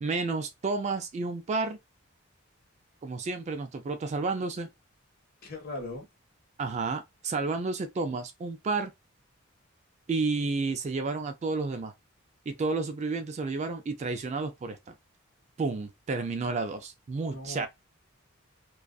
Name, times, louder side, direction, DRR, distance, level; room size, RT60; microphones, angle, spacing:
voice 1, 0.0-1.8 3.0-4.7 6.6-8.9 10.1-11.9 12.5-14.9 15.6-17.7, right 3 dB, 35° right, 0.3 m, -31 dB
voice 2, 5.4-6.1 17.3-17.7, left 2 dB, 50° left, 0.9 m, -38 dB
2.4 x 2.3 x 2.2 m
head